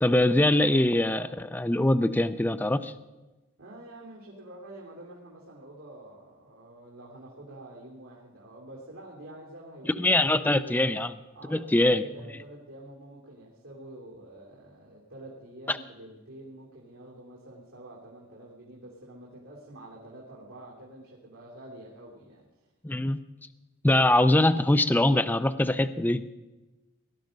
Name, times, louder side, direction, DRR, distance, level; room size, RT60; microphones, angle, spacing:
voice 1, 0.0-2.9 10.0-11.1 11.5-12.0 15.7-15.8 22.8-23.2 23.8-26.3, left 1 dB, 10° left, 11 dB, 0.4 m, -23 dB
voice 2, 3.6-10.9 11.3-22.5, right 1 dB, 75° right, -4 dB, 3.2 m, -47 dB
18.5 x 11.5 x 5.2 m, 1.1 s
head